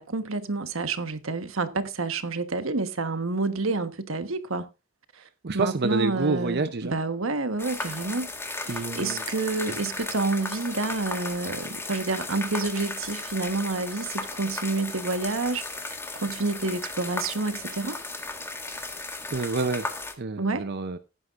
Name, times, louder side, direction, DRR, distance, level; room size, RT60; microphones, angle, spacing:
voice 1, 0.0-4.7 5.5-8.3 8.7-18.0 20.4-20.6, right 3 dB, 80° right, 1.3 m, -29 dB
voice 2, 5.2-6.9 8.7-9.2 9.7-9.8 19.3-19.9 20.2-21.0, right 4 dB, 55° right, 0.7 m, -28 dB
sound 1, 7.6-20.1, left 3 dB, 10° left, 1.7 m, -35 dB
17.5 x 9.6 x 2.5 m
head